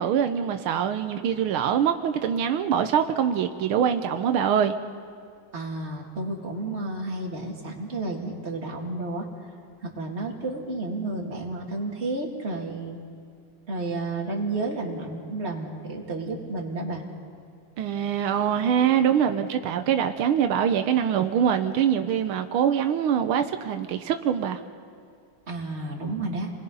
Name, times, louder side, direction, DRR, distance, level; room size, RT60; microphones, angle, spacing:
voice 1, 0.0-4.7 17.8-24.6, right 8 dB, 85° right, 7 dB, 1.7 m, -24 dB
voice 2, 5.5-9.3 9.8-13.0 13.7-17.0 25.5-26.5, right 2 dB, 30° right, -1 dB, 2.6 m, -31 dB
28.5 x 20.5 x 5.5 m, 2.2 s
omnidirectional pair, 2.3 m